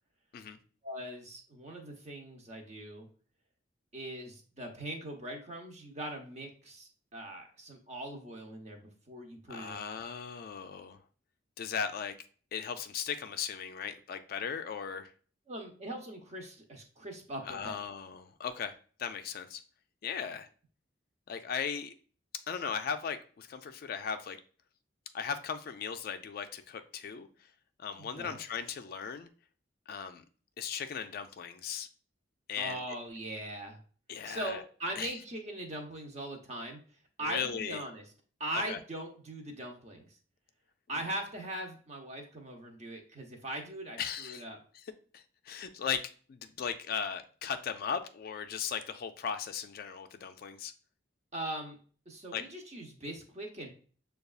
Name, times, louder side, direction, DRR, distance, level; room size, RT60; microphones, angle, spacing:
voice 1, 0.8-3.1 3.9-9.8 15.5-17.7 28.0-28.4 32.6-33.8 34.2-36.8 37.2-38.0 38.4-40.1 40.9-44.6 51.3-51.8 52.1-53.7, right 1 dB, 35° right, 3 dB, 0.8 m, -40 dB
voice 2, 9.5-11.0 11.6-12.1 12.5-15.1 17.4-19.6 20.0-20.5 21.3-21.9 22.5-24.4 25.1-27.3 27.8-29.3 29.9-30.2 30.6-31.9 32.5-32.8 34.1-34.6 35.0-35.1 37.2-37.8 38.7-38.8 44.0-44.4 44.7-50.7 52.3-52.4, left 7 dB, 50° left, 9 dB, 0.3 m, -37 dB
6.5 x 2.3 x 2.3 m, 0.41 s
head